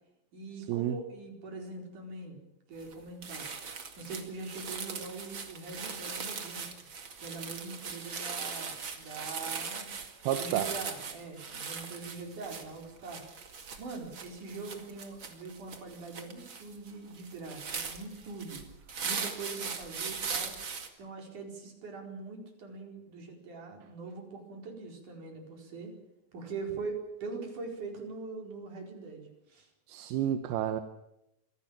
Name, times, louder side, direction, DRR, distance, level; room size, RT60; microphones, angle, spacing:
voice 1, 0.3-2.4 2.7-3.5 4.0-6.8 7.2-9.9 10.4-13.2 13.8-18.6 19.0-20.5 21.0-25.9 26.3-29.7, right 4 dB, 55° right, 2 dB, 5.9 m, -42 dB
sound 1, 2.8-2.9 3.2-20.9, right 5 dB, 40° right, 2.5 m, -40 dB
voice 2, 10.2-10.7 29.9-30.8, right 11 dB, 80° right, 9 dB, 2.9 m, -30 dB
25.5 x 17.0 x 8.9 m, 0.85 s
omnidirectional pair, 4.3 m